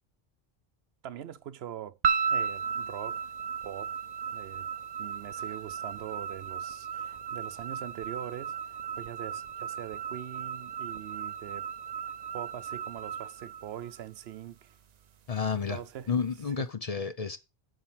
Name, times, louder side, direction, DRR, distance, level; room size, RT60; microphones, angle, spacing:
voice 1, 1.0-2.0 2.3-3.3 3.6-4.0 4.3-4.7 5.0-11.7 12.1-14.7 15.7-16.1 16.6-16.7, right 10 dB, 75° right, 0.9 m, -42 dB
sound 1, 2.0-14.3, right 7 dB, 50° right, 0.6 m, -35 dB
voice 2, 15.3-15.8 16.1-17.4, left 6 dB, 45° left, 0.6 m, -31 dB
7.6 x 5.5 x 5.6 m
omnidirectional pair, 1.1 m